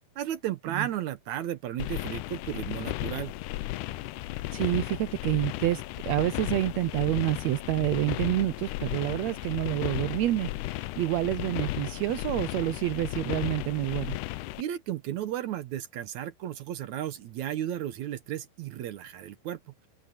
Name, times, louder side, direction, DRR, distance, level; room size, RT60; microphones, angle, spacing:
voice 1, 0.2-3.3 14.6-19.6, right 11 dB, 65° right, 2.1 m, -34 dB
sound 1, 1.8-14.6, left 17 dB, 80° left, 1.9 m, -35 dB
voice 2, 4.5-14.2, right 16 dB, 85° right, 1.5 m, -28 dB
omnidirectional pair, 4.0 m